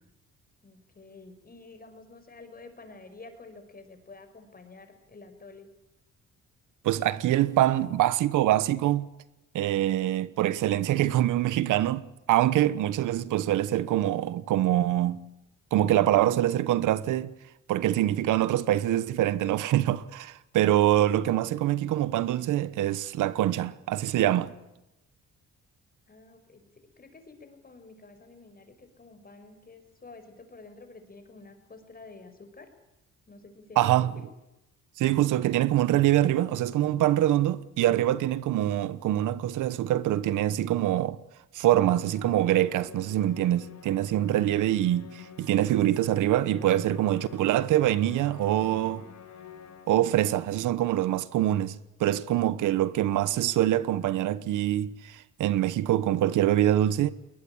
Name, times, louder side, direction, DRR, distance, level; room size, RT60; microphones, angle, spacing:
voice 1, 0.6-5.7 26.1-26.6 27.0-32.7 33.3-33.9, left 3 dB, 30° left, 5.8 m, -49 dB
voice 2, 6.8-9.1 9.5-15.3 15.7-17.3 17.7-24.5 33.8-34.1 35.0-41.2 41.5-49.0 49.9-57.1, right 13 dB, 85° right, 1.2 m, -24 dB
Musical instrument, 41.7-50.2, left 7 dB, 65° left, 4.3 m, -48 dB
21.0 x 20.5 x 8.8 m
cardioid pair, 90°, 30 cm